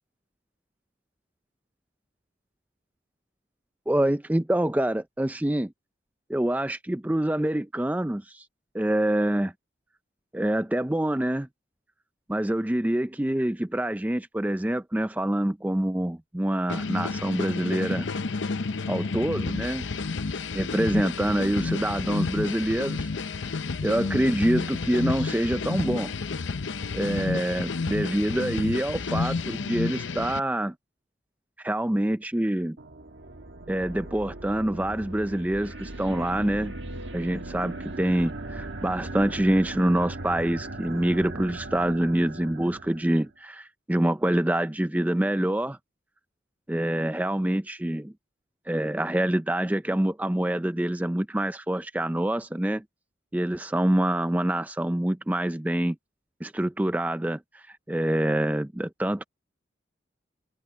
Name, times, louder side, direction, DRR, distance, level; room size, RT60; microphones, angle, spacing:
voice 1, 3.9-5.7 6.3-8.4 8.7-9.5 10.3-11.5 12.3-18.1 18.9-19.9 20.5-23.1 23.8-26.1 26.9-30.7 31.6-32.8 33.7-36.7 37.1-45.8 46.7-48.1 48.7-52.8 53.3-56.0 56.4-59.2, right 1 dB, 10° right, 0.4 m, -26 dB
sound 1, 16.7-30.4, left 4 dB, 80° left, 0.7 m, -30 dB
sound 2, 32.8-43.3, right 2 dB, 80° right, 1.6 m, -38 dB
head